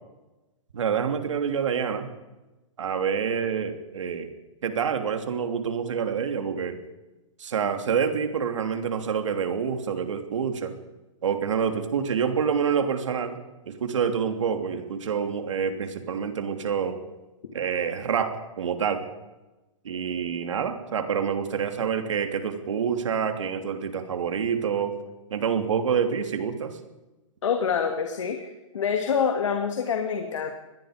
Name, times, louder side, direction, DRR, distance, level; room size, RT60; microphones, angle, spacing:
voice 1, 0.7-2.1 2.8-4.3 4.6-6.8 7.4-10.8 11.2-13.4 13.7-17.0 17.5-19.1 19.8-24.9 25.3-26.8, right 7 dB, 65° right, 7 dB, 3.1 m, -27 dB
voice 2, 27.4-28.5 28.7-30.5, left 6 dB, 65° left, 4 dB, 2.7 m, -26 dB
26.0 x 20.5 x 5.2 m, 1.1 s
hypercardioid pair, 175°, 17 cm